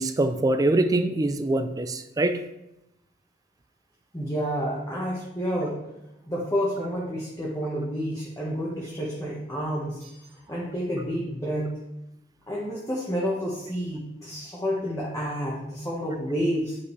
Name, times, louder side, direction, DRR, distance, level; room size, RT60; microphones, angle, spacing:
voice 1, 0.0-2.5, right 2 dB, 20° right, 9 dB, 0.4 m, -24 dB
voice 2, 4.1-5.8 6.3-10.2 10.5-11.8 12.5-16.8, equal, 15° left, -5 dB, 1.2 m, -29 dB
9.8 x 5.8 x 3.2 m, 0.91 s
head